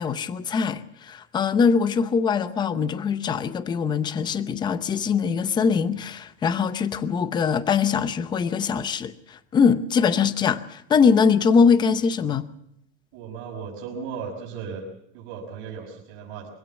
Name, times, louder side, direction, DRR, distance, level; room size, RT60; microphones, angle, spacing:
voice 1, 0.0-12.5, left 6 dB, 15° left, 0.7 m, -22 dB
voice 2, 13.1-14.8 15.1-16.5, right 6 dB, 50° right, 5.6 m, -36 dB
24.5 x 16.5 x 7.4 m
supercardioid pair, 165°, 29 cm